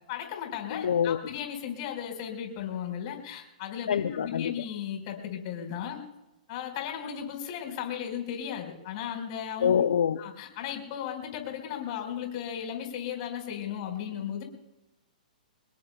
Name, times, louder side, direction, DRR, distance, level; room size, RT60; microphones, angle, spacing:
voice 1, 0.1-6.0 6.5-9.7 10.2-14.4, left 9 dB, 45° left, 4 dB, 4.8 m, -36 dB
voice 2, 0.7-1.2 3.9-4.5 9.6-10.2, left 8 dB, 75° left, 11 dB, 0.7 m, -25 dB
26.0 x 21.0 x 2.3 m, 0.98 s
hypercardioid pair, 125°, 5 cm